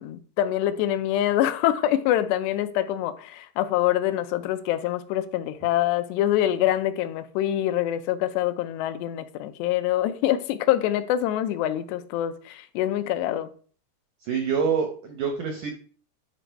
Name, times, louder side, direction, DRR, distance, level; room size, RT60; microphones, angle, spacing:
voice 1, 0.0-13.5, left 12 dB, 85° left, 2.8 m, -25 dB
voice 2, 14.2-15.7, right 6 dB, 80° right, 1.8 m, -26 dB
10.5 x 5.0 x 4.6 m
omnidirectional pair, 4.9 m